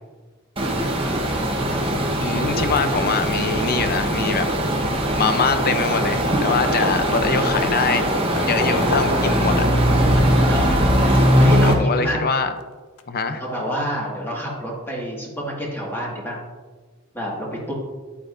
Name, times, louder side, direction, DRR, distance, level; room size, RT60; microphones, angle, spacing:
sound 1, 0.6-11.7, equal, 25° right, 1.2 m, -20 dB
voice 1, 2.2-4.5 5.1-8.1 8.5-9.7 11.6-12.5 13.1-13.4, left 5 dB, 45° left, 9 dB, 0.7 m, -23 dB
sound 2, 6.8-7.6 8.1-9.7 10.9-11.0 12.6-12.7 13.0-13.1, left 3 dB, 85° left, 0.6 m, -30 dB
voice 2, 10.2-12.2 13.3-16.4 17.1-17.7, equal, 10° left, -4 dB, 2.0 m, -28 dB
10.0 x 8.6 x 2.6 m, 1.4 s
head